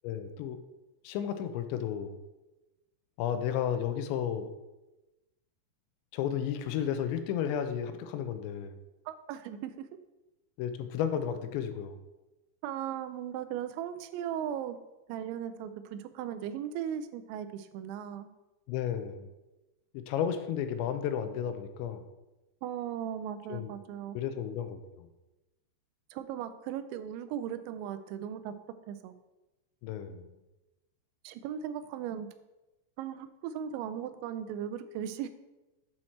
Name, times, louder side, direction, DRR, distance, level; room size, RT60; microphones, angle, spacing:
voice 1, 0.0-0.6 1.0-2.2 3.2-4.5 6.1-8.8 10.6-12.0 18.7-19.2 20.1-22.1 23.5-23.7 24.1-25.1 29.8-30.3, left 9 dB, 85° left, 9 dB, 2.8 m, -33 dB
voice 2, 9.1-9.9 12.6-14.8 15.1-18.3 22.6-24.2 26.1-28.6 28.9-29.1 31.2-32.3 33.0-35.3, right 9 dB, 90° right, 10 dB, 2.9 m, -37 dB
7.7 x 4.4 x 4.2 m, 1.0 s
omnidirectional pair, 5.2 m